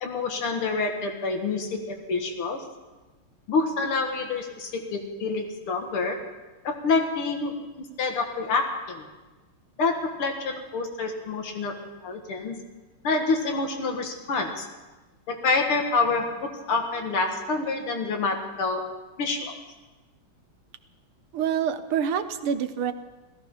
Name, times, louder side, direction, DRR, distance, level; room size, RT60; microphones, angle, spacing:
voice 1, 0.0-2.7 3.5-6.3 6.6-9.1 9.8-12.6 13.0-14.7 15.3-18.9 19.2-19.7, left 3 dB, 75° left, 3 dB, 2.6 m, -27 dB
voice 2, 21.3-22.9, right 8 dB, 80° right, 10 dB, 1.8 m, -26 dB
16.5 x 14.5 x 5.6 m, 1.2 s
omnidirectional pair, 2.4 m